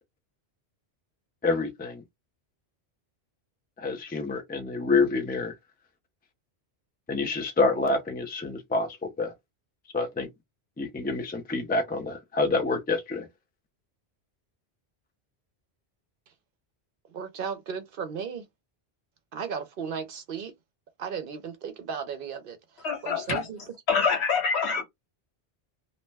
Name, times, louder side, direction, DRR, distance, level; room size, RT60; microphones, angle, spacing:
voice 1, 1.4-2.0 3.8-5.5 7.1-9.3 9.9-10.3 10.8-13.3, left 3 dB, 15° left, 0.4 m, -27 dB
voice 2, 17.1-18.5 19.3-20.5 21.0-23.6, right 6 dB, 60° right, 0.7 m, -35 dB
voice 3, 22.8-23.4 23.9-24.8, left 5 dB, 80° left, 1.3 m, -25 dB
2.7 x 2.1 x 3.2 m
omnidirectional pair, 1.1 m